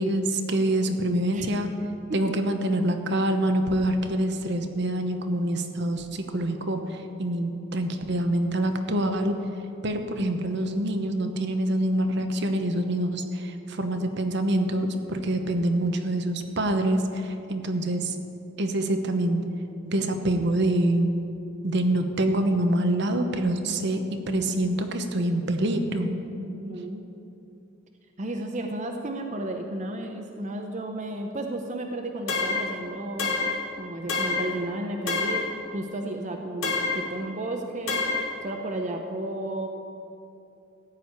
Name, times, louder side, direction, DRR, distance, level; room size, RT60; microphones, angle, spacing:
voice 1, 0.0-1.7 2.1-9.4 9.8-18.2 18.6-19.4 19.8-21.1 21.6-26.1, right 1 dB, 60° right, 6 dB, 1.0 m, -26 dB
voice 2, 26.4-27.0 28.2-33.3 33.8-35.4 35.7-38.0 38.4-39.7, right 1 dB, 40° right, 3 dB, 0.8 m, -33 dB
sound 1, 32.3-32.7 33.2-33.6 34.1-34.5 35.1-35.5 36.6-37.1 37.9-38.3, left 3 dB, 75° left, 2.3 m, -27 dB
14.5 x 5.0 x 9.4 m, 2.8 s
head